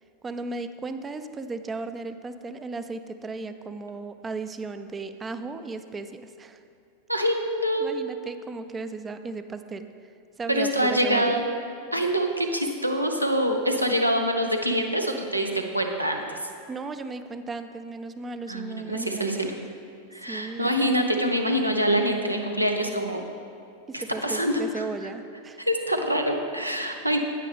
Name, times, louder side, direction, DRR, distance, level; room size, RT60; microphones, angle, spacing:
voice 1, 0.2-6.6 7.8-9.9 10.4-11.4 16.7-19.5 20.3-20.7 23.9-25.7, right 3 dB, 15° right, 10 dB, 0.4 m, -35 dB
voice 2, 7.1-8.1 10.5-11.5 11.9-16.4 18.5-19.5 20.1-23.2 23.9-24.8 25.6-27.2, equal, 85° right, 4 dB, 0.8 m, -25 dB
9.6 x 9.2 x 3.4 m, 2.6 s
figure-of-eight pair, 90°, 0 cm